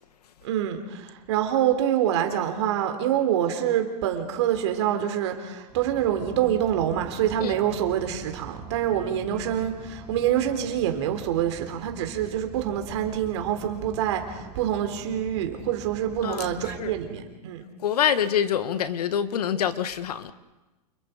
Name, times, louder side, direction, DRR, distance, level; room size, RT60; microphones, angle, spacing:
voice 1, 0.4-17.6, right 10 dB, 45° right, 5 dB, 3.7 m, -26 dB
sound 1, 5.7-17.0, right 3 dB, 10° right, 2.8 m, -44 dB
voice 2, 17.8-20.3, left 9 dB, 70° left, 11 dB, 1.8 m, -25 dB
29.0 x 28.5 x 5.2 m, 1.1 s
supercardioid pair, 170°, 20 cm